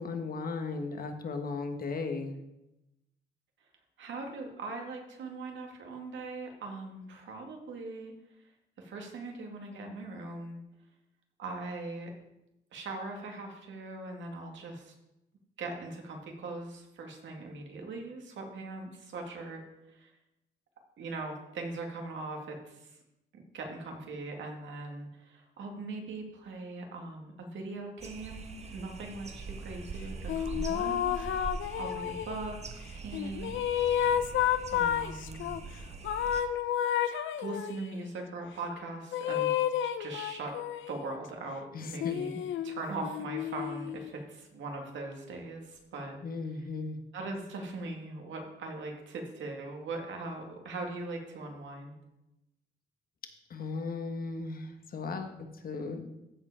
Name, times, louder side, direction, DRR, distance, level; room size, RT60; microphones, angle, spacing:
voice 1, 0.0-2.4 41.7-42.2 46.2-47.0 53.5-56.1, left 4 dB, 45° left, 6 dB, 1.3 m, -36 dB
voice 2, 4.0-8.1 8.8-10.6 11.4-12.1 12.7-14.9 15.6-19.6 19.9-20.2 21.0-23.0 23.3-31.5 31.8-32.6 32.9-33.6 34.7-35.5 37.0-37.1 37.4-39.5 39.8-40.6 40.9-42.3 42.6-46.2 47.1-52.0, right 3 dB, 70° right, 2 dB, 2.2 m, -40 dB
sound 1, 28.0-36.4, right 3 dB, 35° right, 1.1 m, -42 dB
Siren Song, 30.3-32.5 33.1-35.6 36.0-37.9 39.1-41.0 41.8-44.1, left 10 dB, 75° left, 0.6 m, -31 dB
14.5 x 5.0 x 5.0 m, 0.92 s
cardioid pair, 90°, 20 cm